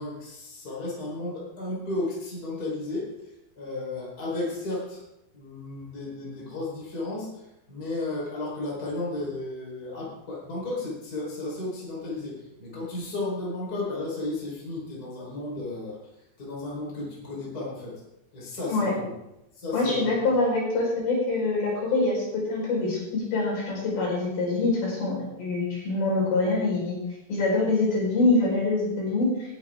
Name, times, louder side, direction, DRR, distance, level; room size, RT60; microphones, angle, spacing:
voice 1, 0.0-3.1 3.6-5.0 5.3-16.0 16.4-18.0 18.3-19.1 19.6-20.2, left 2 dB, 20° left, -4 dB, 4.7 m, -33 dB
voice 2, 19.7-27.0 27.3-29.6, left 3 dB, 65° left, -4 dB, 6.8 m, -25 dB
19.0 x 11.0 x 3.7 m, 0.88 s
omnidirectional pair, 4.7 m